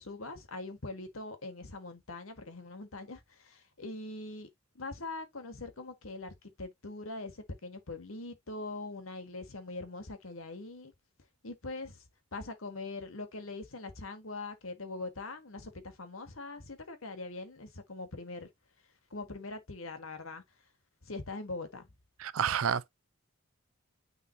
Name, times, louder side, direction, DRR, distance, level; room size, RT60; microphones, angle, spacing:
voice 1, 0.0-4.5 4.7-10.9 11.4-12.0 12.3-18.5 19.1-20.4 21.0-21.9, left 2 dB, 80° left, 1.6 m, -42 dB
voice 2, 22.2-22.9, right 8 dB, 80° right, 0.5 m, -29 dB
9.4 x 3.6 x 2.8 m
head